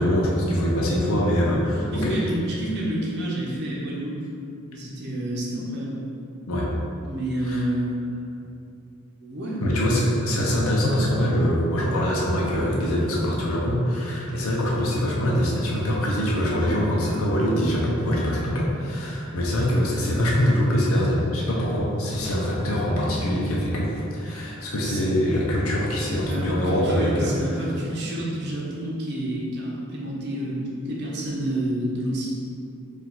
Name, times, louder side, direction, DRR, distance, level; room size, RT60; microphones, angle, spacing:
voice 1, 0.0-2.2 6.5-6.7 7.4-7.6 9.6-27.7, equal, 75° left, -4 dB, 0.7 m, -23 dB
voice 2, 1.9-4.2 4.7-6.0 7.0-8.0 9.2-9.6 24.8-25.0 26.2-32.3, right 1 dB, 50° right, -5 dB, 0.8 m, -29 dB
4.6 x 2.5 x 3.9 m, 2.5 s
head